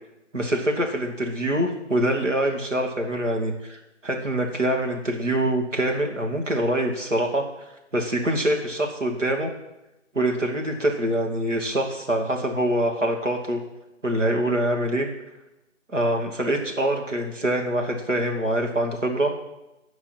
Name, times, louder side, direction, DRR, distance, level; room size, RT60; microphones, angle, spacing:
voice 1, 0.3-7.5 7.9-9.5 10.1-13.6 14.0-15.1 15.9-19.3, right 1 dB, 80° right, 2 dB, 2.4 m, -24 dB
11.5 x 4.8 x 7.4 m, 0.96 s
figure-of-eight pair, 165°, 37 cm